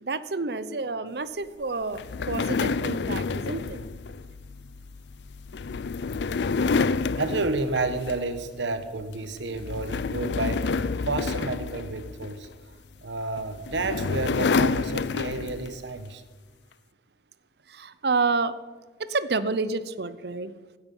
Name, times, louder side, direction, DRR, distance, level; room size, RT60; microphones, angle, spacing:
voice 1, 0.0-2.0 2.3-3.8 17.7-18.5 19.0-20.5, right 3 dB, 60° right, 15 dB, 0.7 m, -29 dB
sound 1, 1.9-8.5 8.8-9.1 9.5-12.5 13.4-15.8, left 4 dB, 70° left, 0.5 m, -29 dB
voice 2, 7.2-12.5 13.0-16.2, right 3 dB, 85° right, 11 dB, 1.2 m, -31 dB
16.0 x 9.9 x 5.5 m, 1.4 s
head